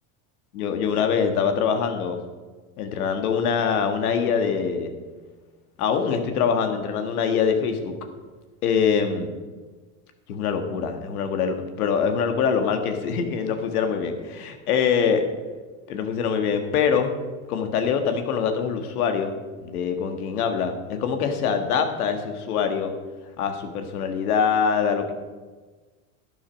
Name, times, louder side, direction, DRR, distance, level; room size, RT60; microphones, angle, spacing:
voice 1, 0.5-2.2 2.8-4.9 5.8-7.9 8.6-9.3 10.3-15.2 15.9-17.1 17.5-19.3 19.6-22.9 23.4-25.1, left 6 dB, 85° left, 6 dB, 1.7 m, -24 dB
11.5 x 9.6 x 5.2 m, 1.3 s
supercardioid pair, 95°, 43 cm